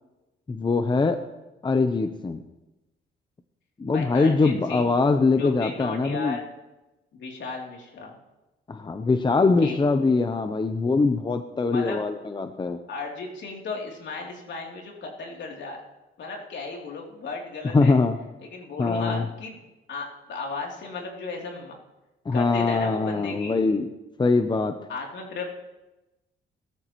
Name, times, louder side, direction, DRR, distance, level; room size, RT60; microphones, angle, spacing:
voice 1, 0.5-1.2 1.6-2.4 3.8-6.4 8.7-12.8 17.7-18.2 18.8-19.3 22.3-23.9 24.2-24.8, left 3 dB, 25° left, 8 dB, 0.7 m, -22 dB
voice 2, 3.9-4.9 5.4-6.5 7.1-8.1 9.6-9.8 11.7-12.0 12.9-15.8 16.2-18.0 18.5-19.6 19.9-21.7 22.3-23.6 24.9-25.5, left 3 dB, 65° left, 0 dB, 3.1 m, -35 dB
18.0 x 13.5 x 3.1 m, 1.0 s
cardioid pair, 90°, 20 cm